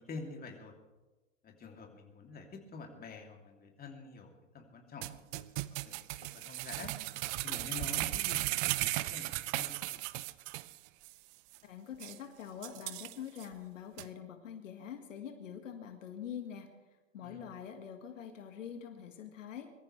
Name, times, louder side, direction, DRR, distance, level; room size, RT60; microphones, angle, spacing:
voice 1, 0.1-0.7 1.4-5.4 5.7-6.9 7.4-9.8 17.2-17.4, left 4 dB, 25° left, 1 dB, 3.0 m, -47 dB
sound 1, 5.0-10.8 11.0-11.1 11.5-11.6 12.0-12.2 12.6-13.5 14.0-14.1, right 19 dB, 45° right, 0.6 m, -36 dB
voice 2, 11.6-16.7 17.1-19.7, left 8 dB, 75° left, 5 dB, 1.9 m, -45 dB
23.0 x 14.0 x 3.3 m, 1.1 s
hypercardioid pair, 110°, 38 cm